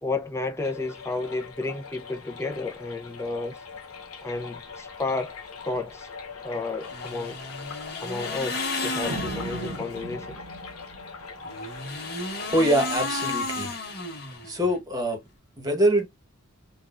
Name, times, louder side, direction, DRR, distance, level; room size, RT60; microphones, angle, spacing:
voice 1, 0.0-3.6 4.2-5.3 5.6-6.1 6.4-7.4 8.0-10.4, left 3 dB, 15° left, 0.6 m, -32 dB
sound 1, 0.6-13.0, left 4 dB, 75° left, 1.0 m, -42 dB
sound 2, 6.8-10.0 11.4-14.8, left 3 dB, 50° left, 1.2 m, -33 dB
sound 3, 9.0-12.1, right 2 dB, 85° right, 0.6 m, -38 dB
voice 2, 12.5-13.7 14.4-15.2 15.6-16.1, right 1 dB, 20° right, 1.1 m, -23 dB
3.9 x 2.4 x 2.4 m
head